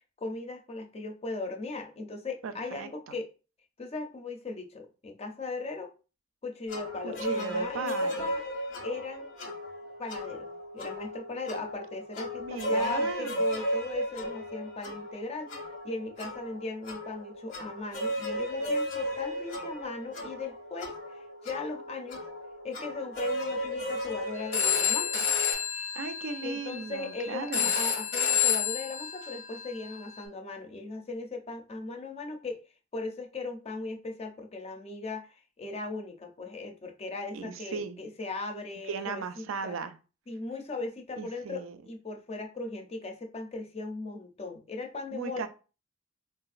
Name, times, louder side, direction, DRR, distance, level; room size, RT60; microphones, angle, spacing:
voice 1, 0.0-3.3 3.8-5.9 6.4-8.4 8.8-9.3 10.0-15.5 15.8-22.2 22.6-25.3 26.4-32.6 32.9-39.7 40.3-45.5, left 3 dB, 30° left, 4 dB, 0.5 m, -38 dB
voice 2, 2.4-3.1 7.0-8.3 12.4-13.4 25.9-27.7 37.3-38.0 38.9-40.0 41.2-41.8 45.1-45.5, right 5 dB, 85° right, 10 dB, 0.4 m, -37 dB
sound 1, 6.7-25.5, equal, 90° left, 1.3 m, -35 dB
Telephone, 24.4-30.2, left 8 dB, 75° left, 0.9 m, -30 dB
3.9 x 2.5 x 2.4 m, 0.34 s
head